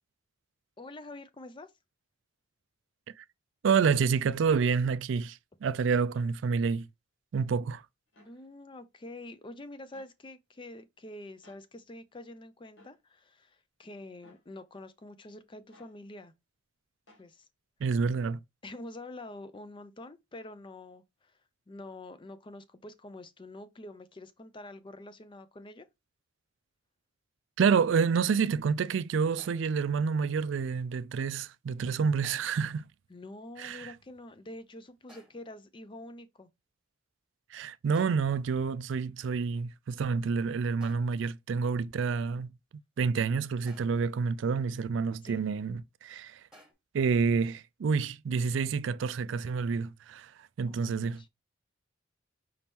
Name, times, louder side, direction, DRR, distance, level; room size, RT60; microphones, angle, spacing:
voice 1, 0.8-1.7 8.2-16.3 17.2-17.5 18.6-21.4 21.7-25.9 33.1-36.5 45.2-45.4 50.7-51.3, left 2 dB, 25° left, 0.5 m, -46 dB
voice 2, 3.6-6.8 7.3-7.8 17.8-18.4 27.6-32.8 33.6-33.9 37.5-42.5 43.0-46.4 46.9-50.3 50.6-51.3, right 5 dB, 65° right, 0.3 m, -28 dB
sound 1, 6.1-6.3 8.1-8.4 9.9-10.1 11.4-11.6 12.8-13.0 14.2-14.5 15.7-16.0 17.1-17.3, left 1 dB, 70° left, 1.6 m, -59 dB
sound 2, 29.4-29.9 32.2-32.7 35.1-35.6 37.9-38.5 40.8-41.3 43.7-44.2 46.5-46.7, equal, 5° right, 1.4 m, -58 dB
5.1 x 2.9 x 3.5 m
head